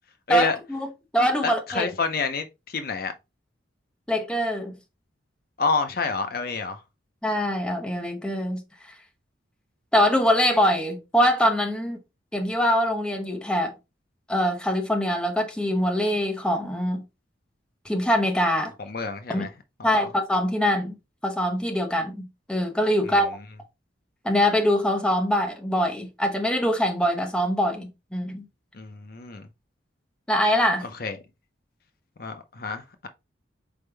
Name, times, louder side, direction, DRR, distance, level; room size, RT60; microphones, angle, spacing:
voice 1, 0.3-0.9 1.1-1.9 4.1-4.7 7.2-8.6 9.9-12.0 12.3-13.7 14.3-17.0 17.8-18.7 19.3-19.5 19.8-20.9 21.2-23.4 24.2-28.4 30.3-30.9, equal, 5° left, 0.7 m, -23 dB
voice 2, 1.4-3.1 5.6-6.8 18.8-19.5 19.8-20.1 23.0-23.1 28.7-29.5 30.8-31.2 32.2-33.1, left 4 dB, 50° left, 0.6 m, -28 dB
4.4 x 3.5 x 3.3 m
head